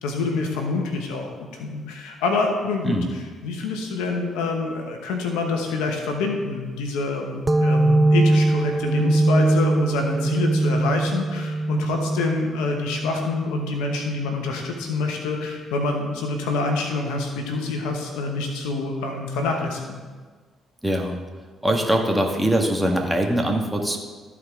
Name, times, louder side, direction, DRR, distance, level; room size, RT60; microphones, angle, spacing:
voice 1, 0.0-20.0, left 3 dB, 85° left, 2 dB, 1.1 m, -26 dB
sound 1, 7.5-14.8, right 2 dB, 25° right, 0.4 m, -22 dB
voice 2, 20.8-21.2 21.6-24.0, right 1 dB, 10° right, 1 dB, 1.7 m, -22 dB
13.5 x 4.8 x 3.7 m, 1.4 s
hypercardioid pair, 55°, 0 cm